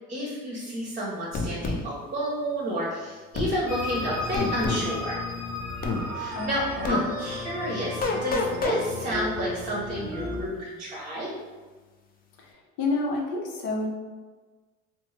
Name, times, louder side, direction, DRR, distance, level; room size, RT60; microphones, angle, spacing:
voice 1, 0.1-5.2 6.1-6.6 6.9-11.3, equal, 25° right, -5 dB, 0.8 m, -31 dB
sound 1, 1.3-1.8 3.3-3.5 4.3-4.9 5.8-6.0 6.8-7.0 8.0-8.8, left 3 dB, 30° left, 0.4 m, -27 dB
sound 2, 3.7-10.4, left 2 dB, 10° right, 1.1 m, -34 dB
voice 2, 12.4-13.9, left 3 dB, 85° left, -1 dB, 0.7 m, -29 dB
2.5 x 2.1 x 3.2 m, 1.3 s
supercardioid pair, 75°, 31 cm